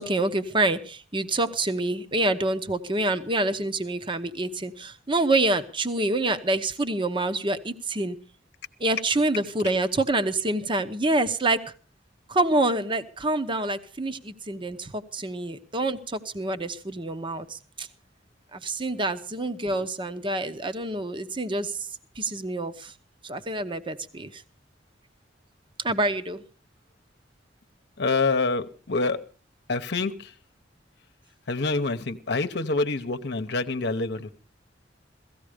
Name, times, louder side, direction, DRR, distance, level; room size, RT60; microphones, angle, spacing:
voice 1, 0.0-8.2 8.8-11.6 12.3-17.9 18.5-21.8 22.2-22.9 23.2-24.4 25.8-26.4, right 2 dB, 25° right, 11 dB, 0.9 m, -27 dB
voice 2, 28.0-29.2 29.7-30.3 31.5-34.3, left 3 dB, 60° left, 8 dB, 0.9 m, -26 dB
17.0 x 14.5 x 5.0 m, 0.38 s
head